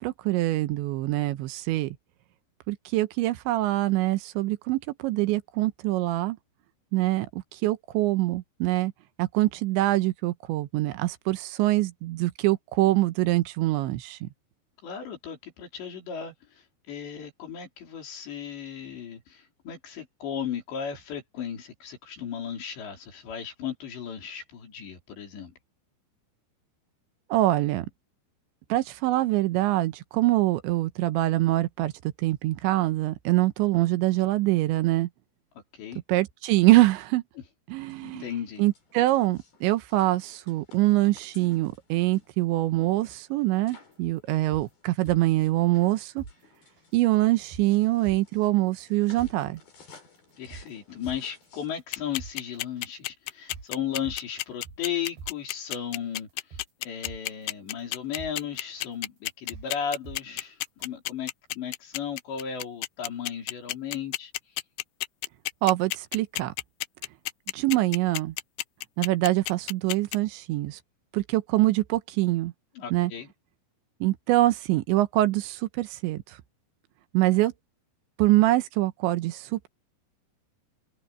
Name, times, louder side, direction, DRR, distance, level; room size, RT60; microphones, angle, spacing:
voice 1, 0.0-2.0 2.7-6.4 6.9-8.9 9.2-14.3 27.3-27.9 28.7-31.9 32.2-35.1 36.1-37.2 37.7-38.2 38.6-46.2 46.9-49.6 65.6-66.5 67.5-68.3 69.0-70.8 71.1-72.5 72.9-73.1 74.0-76.2 77.1-77.5 78.2-79.7, right 17 dB, 80° right, 3.2 m, -24 dB
voice 2, 14.8-25.5 35.7-36.0 38.0-38.6 50.4-61.3 61.6-64.3 72.8-73.3, left 8 dB, 70° left, 6.5 m, -35 dB
sound 1, 37.8-51.8, left 4 dB, 55° left, 8.5 m, -58 dB
sound 2, 43.8-43.9 44.3-45.4 45.8-45.9 46.2-46.3 46.8-46.9 47.3-47.7 48.0-48.5 48.8-48.9 49.2-49.3 49.8-49.9 50.3-51.4 51.8-51.9 52.2-52.3 52.8-52.9 53.3-53.7 54.0-54.9 55.2-55.3 55.8-55.9 56.3-57.4 57.8-57.9 58.2-58.3 58.8-58.9 59.3-59.7 60.0-60.5 60.8-60.9, right 5 dB, 60° right, 7.0 m, -43 dB
sound 3, 51.9-70.2, left 18 dB, 90° left, 2.2 m, -31 dB
open air
omnidirectional pair, 5.3 m